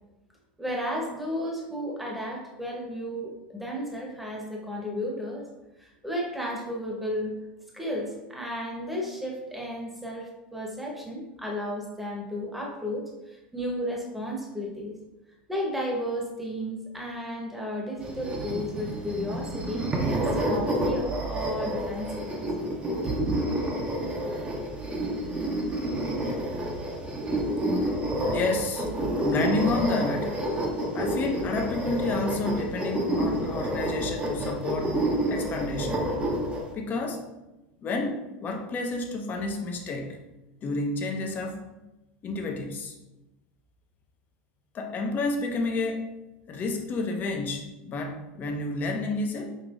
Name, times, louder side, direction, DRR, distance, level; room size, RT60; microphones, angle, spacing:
voice 1, 0.6-5.4 5.8-7.3 7.7-14.9 15.5-22.2 23.0-23.3, equal, 5° right, -2 dB, 1.0 m, -33 dB
sound 1, 18.0-36.7, right 1 dB, 20° right, 0.7 m, -29 dB
voice 2, 28.3-28.9 29.2-30.4 30.9-35.0 35.3-36.1 36.7-37.2 37.8-40.2 40.6-41.6 42.2-43.0 44.7-46.1 46.5-49.5, left 2 dB, 35° left, 3 dB, 0.7 m, -30 dB
5.3 x 2.9 x 2.5 m, 1.0 s
hypercardioid pair, 105°, 5 cm